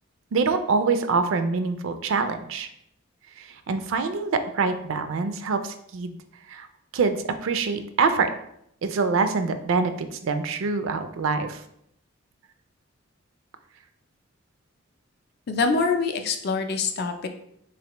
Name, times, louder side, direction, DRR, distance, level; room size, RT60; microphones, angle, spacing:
voice 1, 0.3-2.7 3.4-6.2 6.5-6.7 6.9-8.3 8.8-11.6, right 4 dB, 70° right, 9 dB, 0.4 m, -25 dB
voice 2, 15.5-17.3, left 4 dB, 50° left, 6 dB, 0.4 m, -25 dB
3.8 x 3.2 x 2.9 m, 0.74 s
head